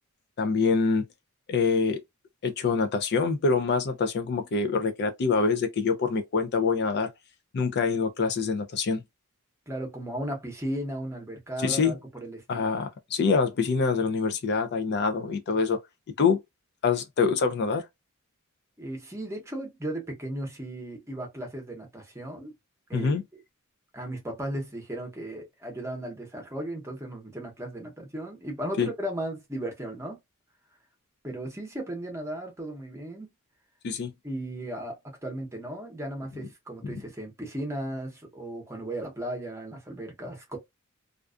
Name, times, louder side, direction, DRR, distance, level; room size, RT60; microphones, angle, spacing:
voice 1, 0.4-1.0 1.5-2.0 2.4-7.1 7.5-9.0 11.6-11.9 12.5-15.8 16.2-16.4 16.8-17.9 22.9-23.2 28.8-28.9 33.8-34.1 36.8-37.0, left 4 dB, 50° left, 0.4 m, -25 dB
voice 2, 9.7-12.7 18.8-22.5 22.9-23.4 23.9-30.2 31.2-33.3 34.2-40.6, right 1 dB, 15° right, 0.8 m, -36 dB
2.4 x 2.3 x 2.3 m
head